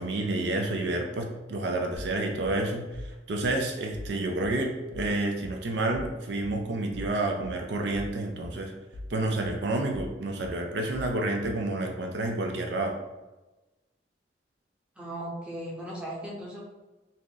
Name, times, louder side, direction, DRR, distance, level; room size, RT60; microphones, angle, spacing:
voice 1, 0.0-8.7 9.1-13.0, right 2 dB, 70° right, 2 dB, 0.4 m, -29 dB
sound 1, 1.9-11.7, left 1 dB, 90° left, 0.5 m, -42 dB
voice 2, 15.0-16.6, right 1 dB, 5° right, -5 dB, 0.7 m, -37 dB
2.8 x 2.4 x 3.7 m, 1.1 s
head